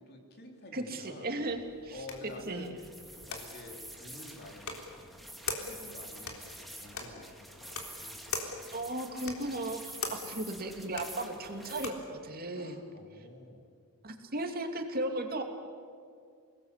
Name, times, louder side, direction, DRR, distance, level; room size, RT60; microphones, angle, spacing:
voice 1, 0.0-1.4 1.9-5.2 5.5-8.3 10.0-10.5 12.5-13.7, left 2 dB, 45° left, 2 dB, 3.8 m, -50 dB
voice 2, 0.7-2.0 2.5-2.7 8.7-12.8 14.0-15.4, right 1 dB, 45° right, 5 dB, 2.7 m, -36 dB
sound 1, 1.4-12.1, left 4 dB, 65° left, 3.7 m, -43 dB
sound 2, 2.3-11.9, right 1 dB, ahead, 2.3 m, -48 dB
29.0 x 19.5 x 8.4 m, 2.2 s
head